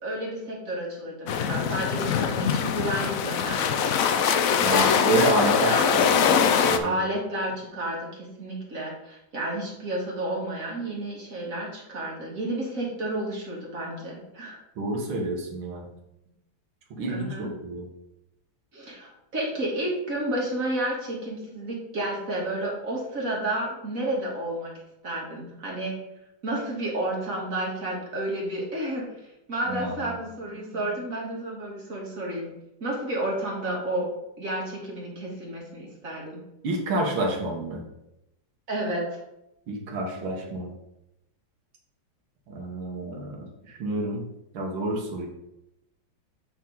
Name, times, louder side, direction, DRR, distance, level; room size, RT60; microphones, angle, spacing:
voice 1, 0.0-3.9 4.7-5.0 5.6-5.9 6.8-14.6 17.1-17.5 18.7-24.7 25.0-25.9 26.4-32.5 32.8-34.1 34.4-36.4 38.7-39.2, right 1 dB, 45° right, -3 dB, 2.1 m, -31 dB
sound 1, 1.3-6.8, left 7 dB, 85° left, 0.7 m, -23 dB
voice 2, 4.6-7.0 14.8-15.8 16.9-17.9 29.7-29.9 36.6-37.8 39.7-40.7 42.5-44.2 44.5-45.3, right 2 dB, 85° right, 0 dB, 2.0 m, -29 dB
8.1 x 4.5 x 3.9 m, 0.86 s
omnidirectional pair, 2.1 m